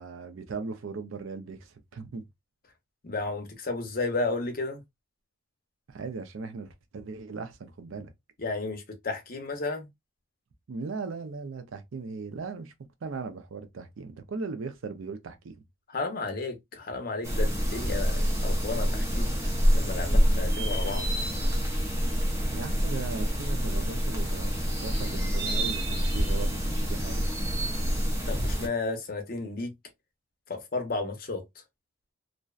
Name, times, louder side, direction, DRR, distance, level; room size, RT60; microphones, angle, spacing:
voice 1, 0.0-2.2 5.9-8.1 10.7-12.7 13.0-15.5 22.5-27.3, right 4 dB, 70° right, 0.4 m, -38 dB
voice 2, 3.0-4.8 8.4-9.9 15.9-19.3 19.7-21.0 28.3-29.7 30.5-31.4, left 3 dB, 45° left, 0.6 m, -33 dB
sound 1, 17.2-28.7, equal, 15° right, 0.5 m, -27 dB
2.5 x 2.1 x 2.3 m
head